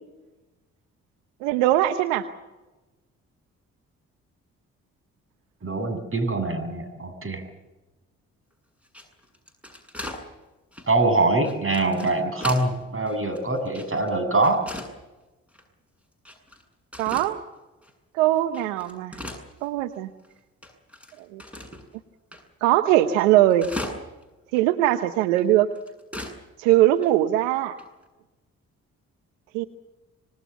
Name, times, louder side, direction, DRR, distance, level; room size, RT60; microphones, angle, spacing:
voice 1, 1.4-2.2 17.0-17.4 18.1-19.2 19.6-20.1 21.3-21.4 22.6-23.7 24.5-25.7 26.6-27.7 29.5-29.6, right 14 dB, 85° right, 11 dB, 1.0 m, -21 dB
voice 2, 5.6-7.4 10.9-14.6, right 2 dB, 35° right, 9 dB, 7.1 m, -24 dB
sound 1, 8.8-10.2 10.7-10.9 11.4-12.7 13.1-14.1 14.4-14.9 15.5-15.6 16.2-16.6 16.9-17.3 17.8-17.9 18.4-20.0 20.2-20.3 20.6-21.9 22.3-22.4 22.7-22.8 23.0-24.2 24.6-24.7 25.4-26.4 26.7-26.8 27.0-27.1 27.8-28.0, left 1 dB, 5° right, 7.8 m, -37 dB
26.0 x 21.0 x 7.1 m, 1.1 s
hypercardioid pair, 40°, 37 cm